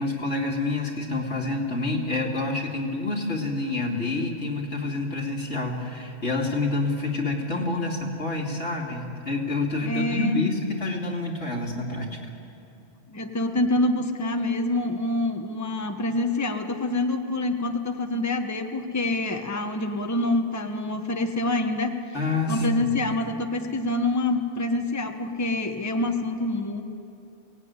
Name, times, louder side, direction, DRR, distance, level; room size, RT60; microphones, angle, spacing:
voice 1, 0.0-12.2 22.1-23.0, left 2 dB, 85° left, -1 dB, 3.1 m, -28 dB
voice 2, 9.8-10.4 13.1-22.0 22.5-26.8, left 2 dB, 15° left, 5 dB, 1.1 m, -26 dB
23.0 x 18.0 x 9.6 m, 2.7 s
omnidirectional pair, 1.2 m